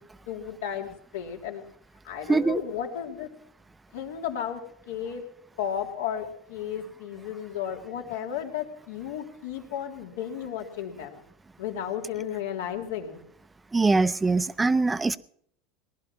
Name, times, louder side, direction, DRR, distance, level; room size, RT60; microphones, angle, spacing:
voice 1, 0.3-1.6 2.0-3.3 3.9-4.6 4.9-5.2 5.6-11.2 11.6-13.2, left 9 dB, 85° left, 3.0 m, -33 dB
voice 2, 2.3-2.6 13.7-15.2, right 3 dB, 10° right, 0.6 m, -22 dB
19.5 x 11.5 x 6.2 m
supercardioid pair, 130°, 0 cm